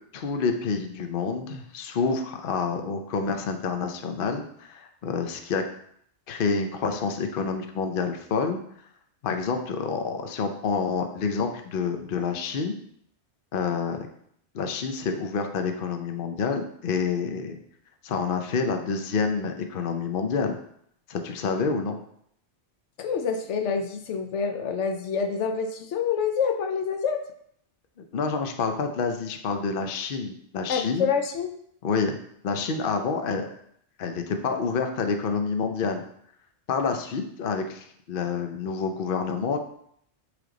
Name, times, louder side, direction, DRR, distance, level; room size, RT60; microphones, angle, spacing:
voice 1, 0.1-5.6 6.3-8.6 9.2-12.7 13.5-14.1 14.5-17.6 18.0-20.6 21.1-22.0 28.1-31.1 31.8-32.2 32.4-33.5 34.0-36.0 36.7-39.6, left 5 dB, 55° left, 6 dB, 0.8 m, -28 dB
voice 2, 23.0-27.2 30.7-31.6, left 6 dB, 85° left, 5 dB, 1.0 m, -27 dB
7.7 x 3.5 x 3.8 m, 0.68 s
omnidirectional pair, 1.2 m